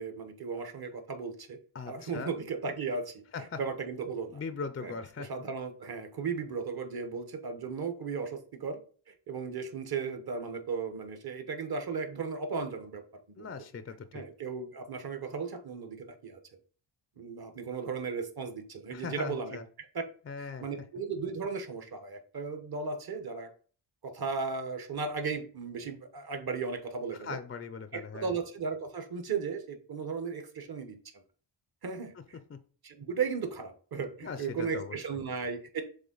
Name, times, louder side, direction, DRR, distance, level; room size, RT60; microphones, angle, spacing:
voice 1, 0.0-1.6 1.8-3.2 3.6-4.4 4.8-8.8 9.1-13.5 14.1-16.4 17.2-19.9 20.4-23.5 24.0-27.4 27.9-31.2 31.8-32.4 32.8-35.8, right 5 dB, 50° right, 7 dB, 1.1 m, -36 dB
voice 2, 1.7-2.3 3.3-3.6 4.3-5.3 13.4-14.2 18.9-19.6 20.3-20.7 27.2-28.4 32.5-32.6 34.2-35.0, left 5 dB, 30° left, 10 dB, 0.4 m, -40 dB
7.0 x 3.6 x 3.9 m, 0.42 s
wide cardioid pair, 145°, 49 cm